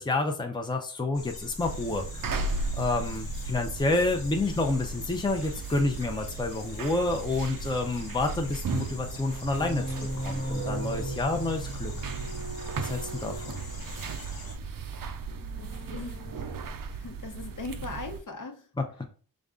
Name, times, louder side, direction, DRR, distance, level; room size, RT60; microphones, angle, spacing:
voice 1, 0.0-2.4 2.7-11.9 12.8-13.6 18.8-19.0, left 2 dB, 10° left, 0.6 m, -29 dB
sound 1, 1.1-14.6, left 2 dB, 85° left, 1.2 m, -43 dB
sound 2, 1.6-18.2, right 4 dB, 65° right, 0.5 m, -37 dB
sound 3, 5.9-6.0 7.7-8.4 8.8-14.3 15.1-16.4, right 1 dB, 35° right, 0.7 m, -38 dB
voice 2, 15.6-16.6 16.9-18.7, left 3 dB, 55° left, 0.9 m, -40 dB
5.2 x 2.3 x 3.7 m
wide cardioid pair, 85°, 37 cm